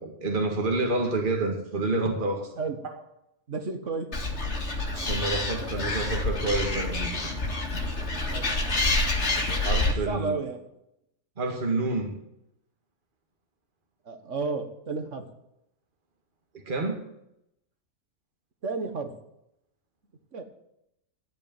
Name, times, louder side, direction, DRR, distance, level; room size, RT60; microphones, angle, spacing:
voice 1, 0.0-2.5 4.9-7.1 9.6-10.4 11.4-12.2 16.7-17.0, right 2 dB, 35° right, 2 dB, 2.0 m, -28 dB
voice 2, 3.5-4.1 5.0-5.2 8.3-8.5 9.9-10.6 14.1-15.3 18.6-19.1 20.3-20.4, right 4 dB, 55° right, 7 dB, 1.8 m, -32 dB
Animal, 4.1-9.9, left 2 dB, 45° left, 2.2 m, -27 dB
11.5 x 8.5 x 9.1 m, 0.82 s
omnidirectional pair, 1.6 m